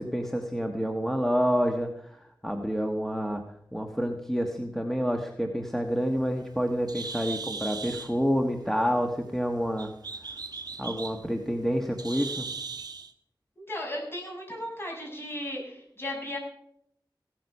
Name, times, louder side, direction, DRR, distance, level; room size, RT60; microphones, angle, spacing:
voice 1, 0.0-3.4 3.7-9.9 10.8-12.5, equal, 5° left, 3 dB, 1.3 m, -28 dB
Bird, 5.8-13.1, right 4 dB, 55° right, 1.2 m, -39 dB
voice 2, 13.6-16.4, left 1 dB, 30° left, -1 dB, 7.0 m, -36 dB
16.5 x 13.0 x 5.4 m, 0.73 s
wide cardioid pair, 70°, 8 cm